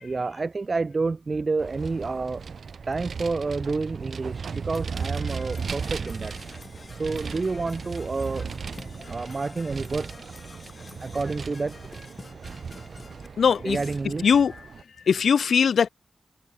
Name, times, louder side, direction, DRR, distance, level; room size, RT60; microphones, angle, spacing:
voice 1, 0.0-2.4 2.9-6.3 6.9-8.5 9.1-10.2 11.0-11.7 13.6-14.6, right 3 dB, 35° right, 1.2 m, -29 dB
Vehicle, 1.6-14.8, right 5 dB, 60° right, 1.7 m, -36 dB
Percussion / Brass instrument, 4.7-13.3, left 3 dB, 35° left, 4.7 m, -47 dB
voice 2, 13.4-13.8 14.2-14.5 15.1-15.9, left 6 dB, 80° left, 0.3 m, -20 dB
wide cardioid pair, 165°, 0 cm